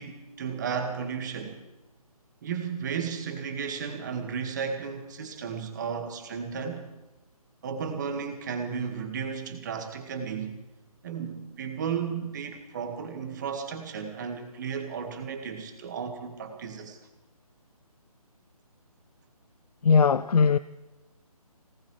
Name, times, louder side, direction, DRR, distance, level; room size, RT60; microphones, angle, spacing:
voice 1, 0.0-1.6 2.4-6.9 7.6-10.6 11.0-17.0, right 6 dB, 30° right, 4 dB, 1.9 m, -34 dB
voice 2, 19.8-20.6, left 5 dB, 75° left, 14 dB, 0.5 m, -19 dB
23.5 x 18.5 x 3.3 m, 1.1 s
figure-of-eight pair, 160°, 19 cm